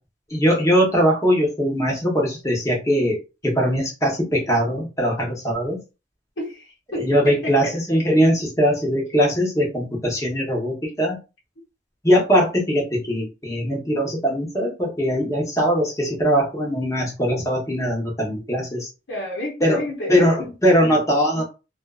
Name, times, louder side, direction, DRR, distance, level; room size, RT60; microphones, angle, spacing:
voice 1, 0.3-3.2 3.4-5.8 7.0-11.2 12.0-18.9 19.6-19.8 20.1-21.4, equal, 15° left, 0.9 m, -21 dB
voice 2, 6.4-7.8 19.1-20.5 21.3-21.4, left 1 dB, 85° left, 0.7 m, -31 dB
2.5 x 2.3 x 2.3 m
head